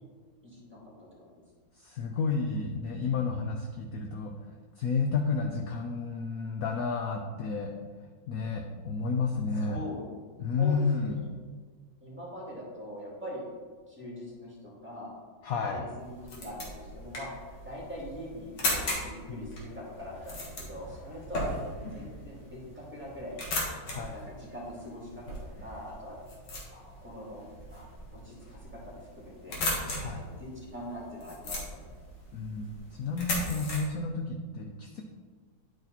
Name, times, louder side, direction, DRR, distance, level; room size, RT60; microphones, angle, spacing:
voice 1, 0.4-0.8 1.2-1.3 9.5-10.0 10.6-11.1 12.0-13.4 13.9-15.1 15.6-17.3 17.6-23.4 23.9-26.2 26.7-27.8 28.1-29.6 30.1-31.7, left 1 dB, 5° right, -6 dB, 2.3 m, -42 dB
voice 2, 1.8-4.3 4.8-7.7 8.3-9.8 10.4-11.2 15.4-15.8 19.3-19.5 23.9-24.2 30.0-30.2 32.3-32.7 33.0-35.0, left 4 dB, 70° left, 3 dB, 0.8 m, -31 dB
sound 1, 16.0-33.8, left 1 dB, 90° left, 2.4 m, -38 dB
10.5 x 4.3 x 4.0 m, 1.5 s
omnidirectional pair, 2.1 m